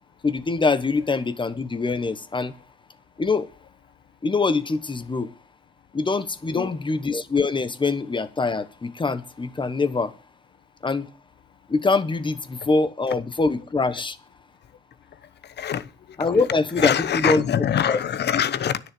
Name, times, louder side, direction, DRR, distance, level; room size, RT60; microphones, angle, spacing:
voice 1, 0.2-2.5 3.2-3.5 4.2-5.3 5.9-10.1 10.8-11.1 11.7-14.2 16.2-17.4 17.9-18.0, left 3 dB, 25° left, 1.2 m, -24 dB
voice 2, 15.4-15.9 16.2-16.3 16.8-18.8, left 9 dB, 60° left, 1.0 m, -24 dB
10.5 x 6.5 x 7.9 m
cardioid pair, 90°, 20 cm